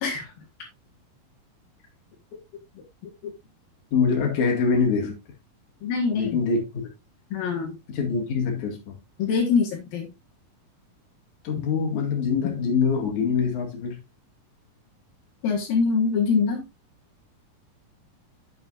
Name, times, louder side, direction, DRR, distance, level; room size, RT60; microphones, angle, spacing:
voice 1, 3.9-5.2 6.1-6.8 7.9-9.0 11.4-14.0, left 5 dB, 60° left, 3.4 m, -24 dB
voice 2, 5.8-6.4 7.3-7.8 9.2-10.1 15.4-16.6, left 5 dB, 80° left, 3.5 m, -24 dB
9.2 x 7.3 x 2.6 m
omnidirectional pair, 4.2 m